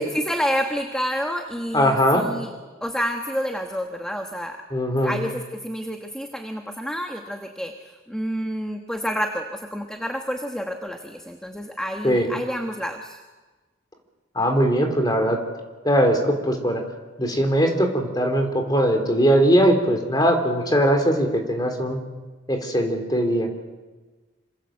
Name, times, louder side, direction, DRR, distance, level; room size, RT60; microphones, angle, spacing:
voice 1, 0.0-2.5 2.8-4.6 5.0-13.2, equal, 5° left, 3 dB, 1.3 m, -29 dB
voice 2, 1.7-2.2 4.7-5.2 12.0-12.3 14.4-15.4 15.8-16.8 17.2-22.0 22.5-23.5, equal, 20° left, 5 dB, 3.8 m, -20 dB
27.0 x 26.5 x 7.8 m, 1.3 s
head